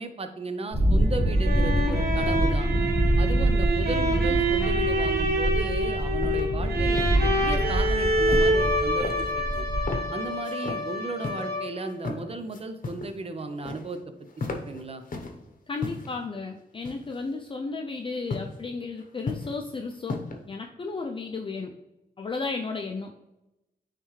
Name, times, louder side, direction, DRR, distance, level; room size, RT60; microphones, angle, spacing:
voice 1, 0.0-2.7 3.2-9.7 10.1-14.0 14.5-15.0, right 3 dB, 40° right, 8 dB, 0.7 m, -35 dB
sound 1, 0.7-10.0, right 1 dB, 10° left, 1.9 m, -25 dB
sound 2, 1.0-11.9, right 1 dB, 80° right, 1.3 m, -27 dB
sound 3, 6.2-6.4 6.7-7.2 8.2-8.7 9.0-9.6 9.9-10.1 10.4-10.8 11.2-11.4 11.9-12.2 12.5-13.1 13.4-14.0 14.3-15.4 15.8-16.2 16.8-17.3 18.3-18.5 19.0-19.6 19.9-20.4, left 3 dB, 55° left, 0.9 m, -35 dB
voice 2, 15.7-20.2 20.5-21.7 22.2-23.1, left 4 dB, 35° left, 3 dB, 0.4 m, -33 dB
9.1 x 3.3 x 3.1 m, 0.94 s
wide cardioid pair, 100°, 16 cm